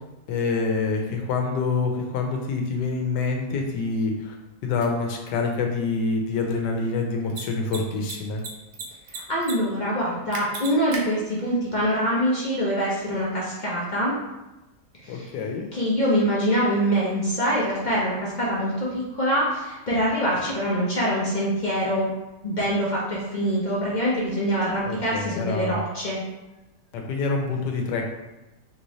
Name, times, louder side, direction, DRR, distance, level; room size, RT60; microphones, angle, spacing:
voice 1, 0.3-4.4 4.6-8.4 15.1-15.7 24.8-25.8 26.9-28.1, left 4 dB, 90° left, 2 dB, 1.3 m, -26 dB
Mechanisms, 4.8-4.9 7.2-7.4 7.7-7.8 8.0-8.8 9.1-9.5 9.8-9.9 10.3-11.0, right 5 dB, 85° right, 1.3 m, -34 dB
voice 2, 9.1-14.1 15.0-15.3 15.7-22.1 22.4-26.2, equal, 60° left, -6 dB, 0.4 m, -24 dB
3.8 x 3.1 x 2.7 m, 1.0 s
omnidirectional pair, 1.8 m